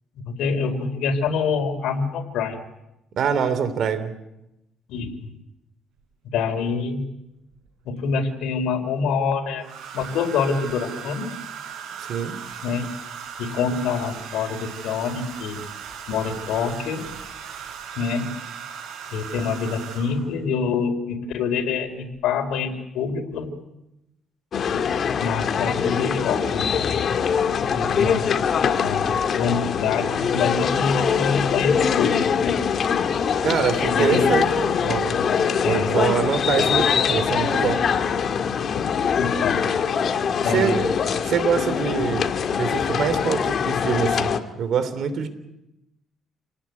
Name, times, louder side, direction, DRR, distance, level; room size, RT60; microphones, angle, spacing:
voice 1, 0.2-2.6 4.9-5.1 6.3-7.0 7.8-9.7 9.9-11.3 12.6-12.9 13.4-15.6 16.1-17.0 18.0-18.2 19.1-23.5 25.2-26.8 27.7-28.3 28.8-32.5 33.9-34.3 35.6-35.9 36.6-36.7 39.2-39.7 40.4-40.9, left 5 dB, 90° left, 6 dB, 4.4 m, -26 dB
voice 2, 3.2-4.1 12.0-12.4 33.4-35.2 35.6-37.8 40.4-40.9 41.2-45.3, right 7 dB, 60° right, 12 dB, 3.3 m, -24 dB
Domestic sounds home sounds, 6.0-6.1 7.5-8.2 9.6-20.4 21.6-21.9 22.1-22.5, right 7 dB, 80° right, 6.9 m, -38 dB
sound 1, 24.5-44.4, left 7 dB, 50° left, 1.9 m, -23 dB
28.5 x 19.0 x 9.7 m, 0.89 s
cardioid pair, 125°, 0 cm